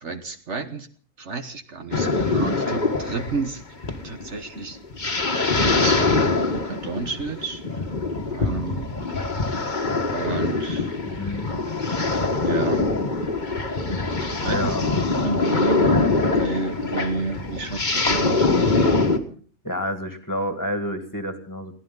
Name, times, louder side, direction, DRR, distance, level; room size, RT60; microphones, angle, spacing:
voice 1, 0.0-0.9 1.2-3.6 4.0-4.8 5.5-7.8 8.3-9.3 10.1-11.0 12.4-12.9 14.3-14.7 15.2-18.5, right 4 dB, 60° right, 8 dB, 1.5 m, -31 dB
sound 1, 1.9-19.2, left 3 dB, 35° left, 1.7 m, -23 dB
voice 2, 11.0-11.5 14.5-15.1 19.6-21.7, left 1 dB, 15° left, 8 dB, 2.1 m, -29 dB
22.5 x 16.0 x 3.9 m, 0.43 s
omnidirectional pair, 1.4 m